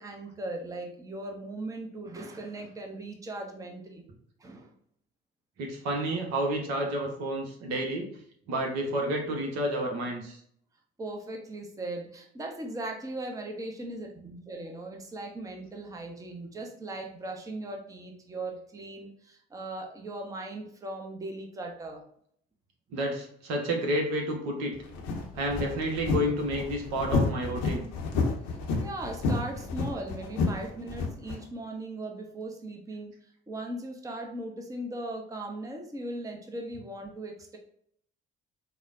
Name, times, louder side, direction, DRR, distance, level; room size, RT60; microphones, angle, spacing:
voice 1, 0.0-4.0 4.4-4.7 11.0-22.0 28.8-33.1 33.5-37.6, right 2 dB, 10° right, 2 dB, 0.6 m, -38 dB
voice 2, 5.6-8.1 8.5-10.4 22.9-24.7 25.3-27.9, right 1 dB, 60° right, 1 dB, 0.9 m, -30 dB
sound 1, 24.7-31.4, left 3 dB, 65° left, 0.7 m, -30 dB
4.7 x 2.1 x 2.5 m, 0.65 s
figure-of-eight pair, 50°, 30 cm